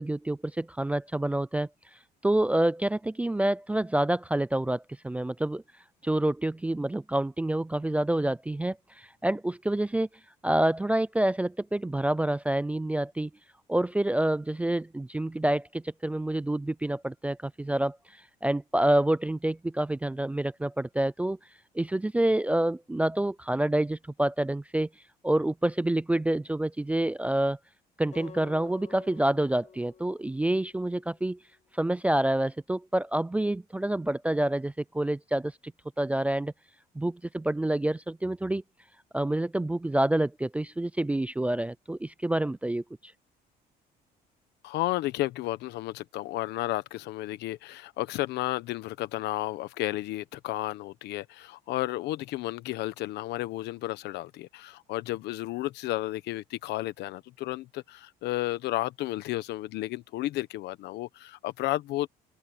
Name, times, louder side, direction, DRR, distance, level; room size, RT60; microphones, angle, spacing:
voice 1, 0.0-1.7 2.2-5.6 6.0-10.1 10.4-13.3 13.7-18.0 18.4-21.4 21.8-24.9 25.2-27.6 28.0-31.4 31.8-35.5 36.0-36.5 37.0-38.6 39.1-42.8, right 1 dB, 10° right, 0.3 m, -27 dB
Acoustic guitar, 28.1-31.4, left 7 dB, 45° left, 4.8 m, -51 dB
voice 2, 44.6-62.1, left 16 dB, 80° left, 1.2 m, -32 dB
cardioid pair, 110°, 17 cm